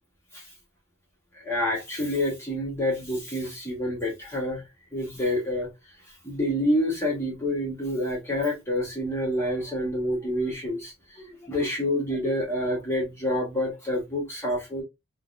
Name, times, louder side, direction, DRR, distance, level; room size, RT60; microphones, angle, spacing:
voice 1, 1.4-4.6 4.9-5.7 6.2-14.8, left 1 dB, 15° left, 0.9 m, -28 dB
3.4 x 2.1 x 2.4 m
head